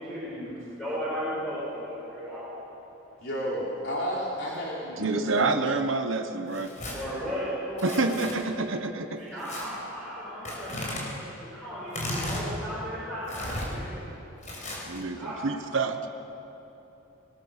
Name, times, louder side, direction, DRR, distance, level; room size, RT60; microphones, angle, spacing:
voice 1, 0.0-2.5 6.9-8.3 9.1-14.0 15.2-15.4, equal, ahead, -11 dB, 5.8 m, -35 dB
voice 2, 3.2-5.7, equal, 60° left, -5 dB, 3.7 m, -32 dB
voice 3, 5.0-6.7 7.8-9.2 14.9-16.1, right 3 dB, 75° right, 7 dB, 1.1 m, -28 dB
Tearing, 6.5-7.0 7.8-8.3 9.4-9.6 10.5-11.0 11.9-12.5 13.3-13.7 14.4-15.0, left 1 dB, 40° left, 5.0 m, -35 dB
21.0 x 20.5 x 6.6 m, 3.0 s
head